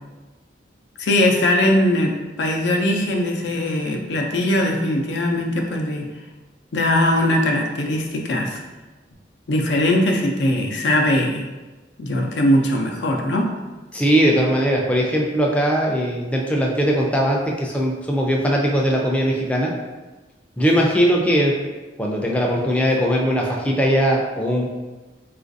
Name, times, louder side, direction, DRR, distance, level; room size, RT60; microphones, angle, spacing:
voice 1, 1.0-6.1 6.7-8.6 9.5-11.4 12.0-13.5, left 1 dB, 85° left, 1 dB, 0.5 m, -20 dB
voice 2, 13.9-19.7 20.6-21.5 22.0-24.7, equal, 5° left, -2 dB, 0.3 m, -20 dB
3.8 x 2.4 x 2.5 m, 1.2 s
head